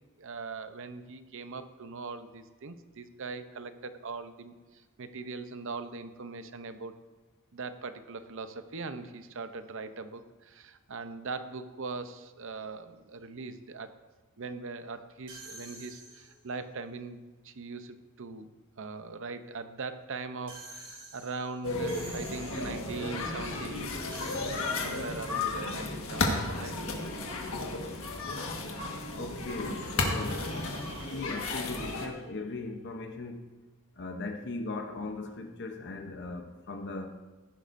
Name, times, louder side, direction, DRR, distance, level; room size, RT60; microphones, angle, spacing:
voice 1, 0.2-6.9 7.5-13.9 14.4-18.5 18.8-24.4 24.7-27.2, right 4 dB, 65° right, 10 dB, 0.7 m, -41 dB
sound 1, 15.3-16.5 20.5-23.0 24.1-25.4 30.2-32.8, right 2 dB, 45° right, 3.4 m, -49 dB
sound 2, 21.6-32.1, left 2 dB, 75° left, 1.5 m, -33 dB
voice 2, 29.1-30.8 31.1-33.5 34.0-37.2, left 3 dB, 55° left, 4 dB, 0.8 m, -39 dB
14.5 x 11.0 x 2.6 m, 1.2 s
head